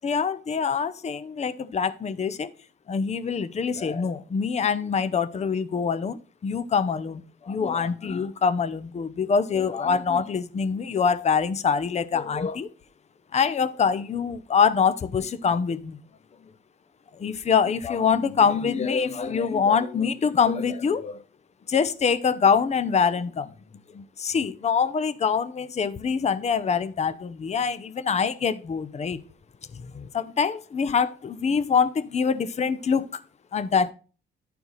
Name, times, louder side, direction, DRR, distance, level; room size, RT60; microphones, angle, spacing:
voice 1, 0.0-2.5 2.9-12.7 13.3-16.0 17.1-21.2 21.7-23.5 23.9-29.2 29.7-33.2 33.5-33.9, left 6 dB, 35° left, 0.7 m, -24 dB
11.0 x 4.6 x 3.9 m
cardioid pair, 90°, 20 cm